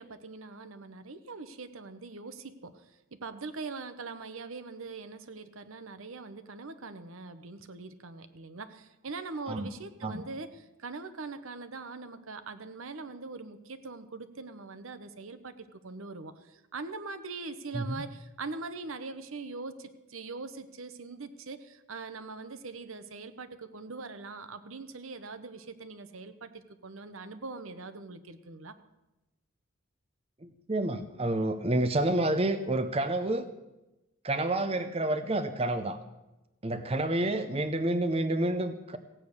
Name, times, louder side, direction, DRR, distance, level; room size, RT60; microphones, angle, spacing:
voice 1, 0.0-28.7, right 3 dB, 70° right, 10 dB, 0.9 m, -42 dB
voice 2, 30.4-33.5 34.2-36.0 36.6-39.0, right 1 dB, 25° right, 8 dB, 0.7 m, -29 dB
16.0 x 8.9 x 6.6 m, 0.99 s
head